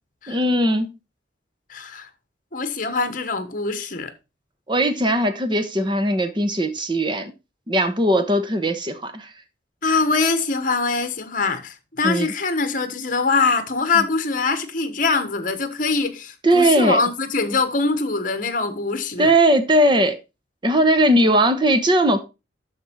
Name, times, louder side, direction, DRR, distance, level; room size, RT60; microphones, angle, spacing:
voice 1, 0.3-0.9 4.7-7.3 7.7-9.3 12.0-12.3 16.4-17.0 19.2-20.2 20.6-22.2, right 1 dB, 25° right, 1.0 m, -19 dB
voice 2, 1.7-2.1 2.5-4.1 9.8-19.4, left 4 dB, 45° left, 1.2 m, -23 dB
12.0 x 4.5 x 4.4 m
head